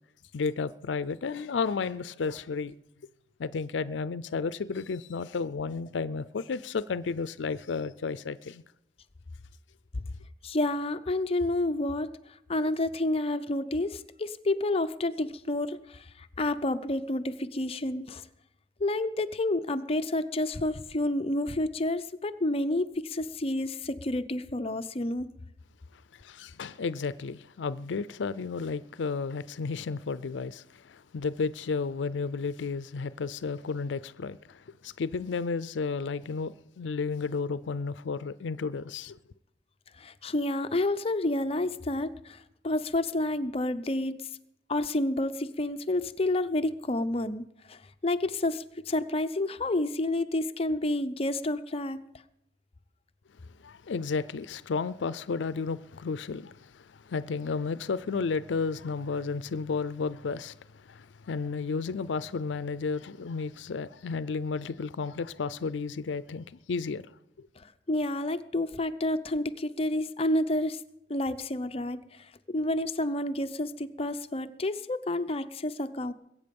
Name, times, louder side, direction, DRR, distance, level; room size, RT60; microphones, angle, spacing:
voice 1, 0.3-2.7 3.4-8.6 26.1-39.2 53.6-67.0 67.4-67.5, left 4 dB, 85° left, 0.5 m, -32 dB
voice 2, 10.4-12.1 12.5-18.2 18.8-25.3 40.0-44.2 44.7-52.0 67.9-70.8 71.1-72.0 72.5-76.1, left 1 dB, 35° left, 0.6 m, -29 dB
21.5 x 8.4 x 5.3 m
head